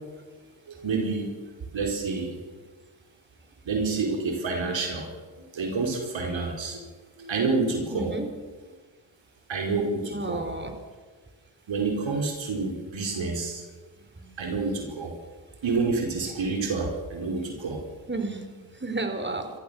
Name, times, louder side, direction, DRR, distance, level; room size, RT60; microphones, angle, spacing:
voice 1, 0.7-1.4 1.7-2.3 3.6-5.1 5.5-6.8 7.2-8.1 9.5-10.4 11.7-13.6 14.4-15.1 15.6-17.8, right 4 dB, 80° right, 2 dB, 4.8 m, -28 dB
voice 2, 7.9-8.3 10.0-10.7 14.2-14.8 18.1-19.5, right 2 dB, 25° right, 7 dB, 4.4 m, -33 dB
28.0 x 14.5 x 7.1 m, 1.4 s
supercardioid pair, 45°, 45 cm